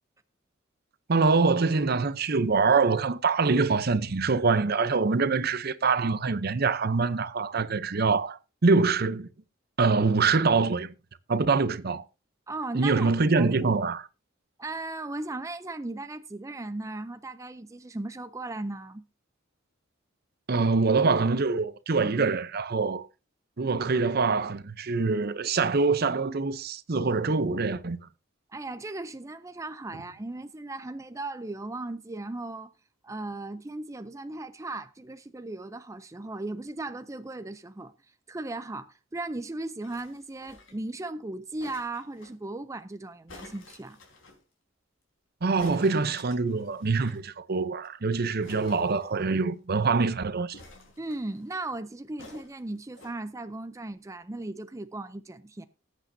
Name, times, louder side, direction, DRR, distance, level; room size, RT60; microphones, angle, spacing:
voice 1, 1.1-9.3 9.8-10.9 11.3-12.0 12.7-14.1 20.5-23.0 23.6-28.0 45.4-50.6, right 4 dB, 50° right, 0.7 m, -24 dB
voice 2, 12.5-13.9 14.6-19.0 28.5-32.7 33.0-37.9 38.3-44.0 51.0-55.6, right 2 dB, 15° right, 0.5 m, -37 dB
sound 1, 39.8-40.9 41.6-42.3 43.3-44.4 45.6-47.3 47.5-47.6 47.8-48.0 48.4-49.6 50.5-51.5 52.2-53.2 53.9-54.0, left 2 dB, 80° left, 4.3 m, -51 dB
20.0 x 8.3 x 2.7 m
head